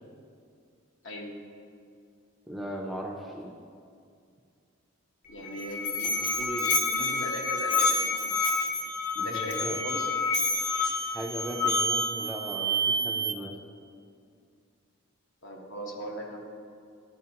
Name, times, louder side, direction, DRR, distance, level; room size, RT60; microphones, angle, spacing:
voice 1, 1.0-1.3 5.3-8.4 9.2-10.1 15.4-16.4, equal, 65° left, 0 dB, 1.0 m, -38 dB
voice 2, 2.5-3.5 9.2-9.8 11.1-13.6, equal, ahead, -1 dB, 0.4 m, -37 dB
Musical instrument, 5.3-12.2, left 4 dB, 35° left, 0.6 m, -28 dB
sound 1, 8.9-9.2 9.7-10.2 10.7-13.3, right 6 dB, 85° right, 0.4 m, -32 dB
11.0 x 4.3 x 2.8 m, 2.3 s
head